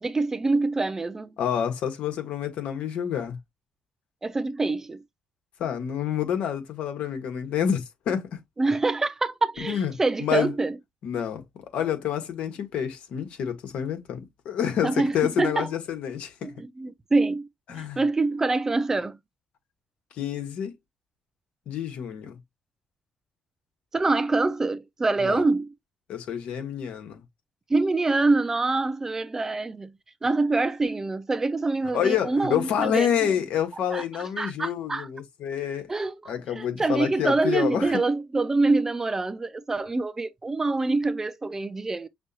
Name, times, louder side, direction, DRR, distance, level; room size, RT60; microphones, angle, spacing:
voice 1, 0.0-1.3 4.2-5.0 8.6-10.7 14.8-15.7 16.4-19.2 23.9-25.7 27.7-30.0 30.2-33.3 33.9-34.0 34.4-35.1 35.9-42.1, right 3 dB, 20° right, 0.6 m, -25 dB
voice 2, 1.4-3.4 5.6-8.4 9.7-9.9 10.2-10.5 11.0-11.4 11.7-14.2 14.4-16.5 17.7-18.0 20.2-20.7 21.7-22.4 25.2-25.4 26.1-27.2 31.9-35.9 36.2-38.0, left 9 dB, 85° left, 1.6 m, -28 dB
6.1 x 2.5 x 2.9 m
cardioid pair, 100°, 2 cm